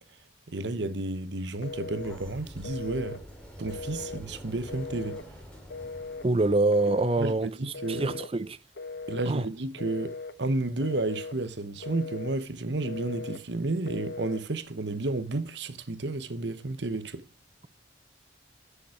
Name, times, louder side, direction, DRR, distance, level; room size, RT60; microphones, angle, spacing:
voice 1, 0.5-3.2 3.6-5.2 7.2-8.1 9.1-17.2, right 2 dB, 65° right, 1.0 m, -32 dB
Telephone, 1.6-2.2 2.6-3.2 3.7-4.2 4.7-5.3 5.7-6.3 6.7-7.3 7.7-8.3 8.8-9.3 9.8-10.4 10.8-11.4 11.8-12.4 12.8-13.4 13.8-14.4, left 4 dB, 55° left, 0.6 m, -39 dB
Sliding door, 1.6-6.6, equal, 5° left, 2.5 m, -46 dB
voice 2, 6.2-8.6 9.3-9.5, right 2 dB, 30° right, 0.5 m, -25 dB
11.5 x 7.1 x 4.9 m
head